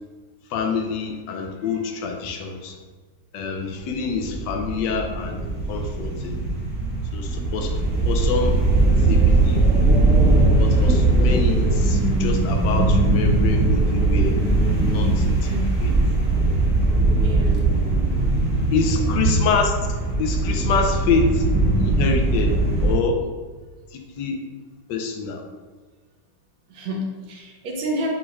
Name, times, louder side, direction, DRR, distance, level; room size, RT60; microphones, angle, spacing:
voice 1, 0.5-2.8 3.3-5.4 5.7-6.4 7.1-7.7 8.1-8.6 9.1-9.6 10.6-14.4 14.9-15.5 15.8-15.9 18.7-19.7 20.2-21.5 21.8-22.6 22.8-23.2 23.9-24.4 24.9-25.4, left 5 dB, 70° left, 3 dB, 1.1 m, -26 dB
sound 1, 3.9-23.0, right 2 dB, 10° right, 0.5 m, -20 dB
voice 2, 17.2-17.6 18.9-19.1 26.7-28.1, equal, 70° right, -1 dB, 1.4 m, -31 dB
6.1 x 2.4 x 3.2 m, 1.3 s
omnidirectional pair, 2.2 m